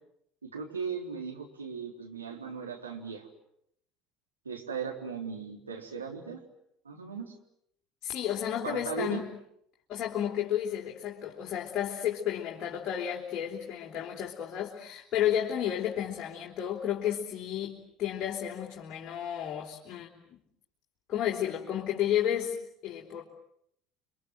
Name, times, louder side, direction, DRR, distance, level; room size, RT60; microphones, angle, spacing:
voice 1, 0.4-3.3 4.4-6.4 6.8-7.3 8.6-9.2, right 6 dB, 80° right, 1 dB, 3.9 m, -37 dB
voice 2, 8.0-9.2 9.9-20.4 21.1-22.6 22.8-23.2, left 10 dB, 40° left, -1 dB, 3.7 m, -32 dB
30.0 x 24.5 x 7.9 m, 0.74 s
figure-of-eight pair, 65°, 0 cm